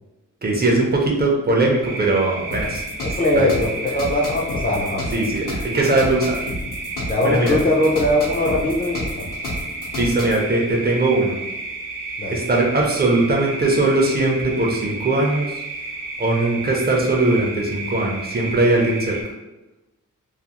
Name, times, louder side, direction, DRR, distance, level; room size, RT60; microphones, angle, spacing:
voice 1, 0.4-3.5 5.1-6.5 7.2-7.6 10.0-11.4 12.3-15.6 16.2-19.2, right 2 dB, 30° right, -1 dB, 0.4 m, -20 dB
sound 1, 1.8-19.2, right 3 dB, 75° right, 0.8 m, -32 dB
sound 2, 2.5-10.4, left 1 dB, 80° left, 0.8 m, -30 dB
voice 2, 3.0-5.2 7.1-9.3 12.2-12.4, left 1 dB, 30° left, -2 dB, 0.3 m, -21 dB
2.4 x 2.3 x 2.8 m, 1.0 s
wide cardioid pair, 150°, 31 cm